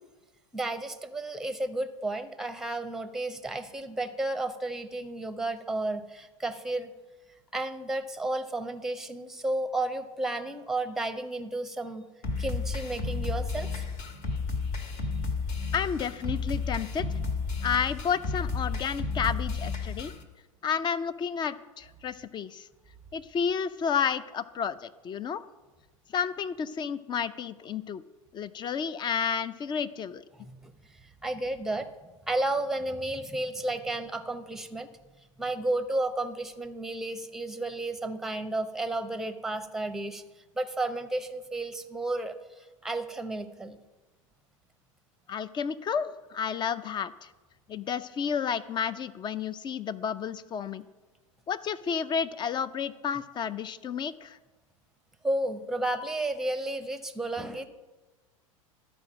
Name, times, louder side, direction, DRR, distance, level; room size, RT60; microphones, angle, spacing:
voice 1, 0.5-6.9 7.5-12.0 12.4-13.8 30.4-30.7 31.2-31.9 32.3-34.9 35.4-40.2 40.6-42.3 42.8-43.8 55.2-57.6, right 2 dB, ahead, 10 dB, 0.8 m, -32 dB
sound 1, 12.2-20.2, left 4 dB, 50° left, 1.7 m, -32 dB
voice 2, 15.7-17.0 17.6-20.1 20.6-22.7 23.1-25.4 26.1-28.0 28.3-30.2 45.3-47.3 47.7-50.9 51.5-54.4, left 7 dB, 25° left, 15 dB, 0.5 m, -31 dB
12.5 x 5.0 x 6.1 m, 1.2 s
hypercardioid pair, 90°, 18 cm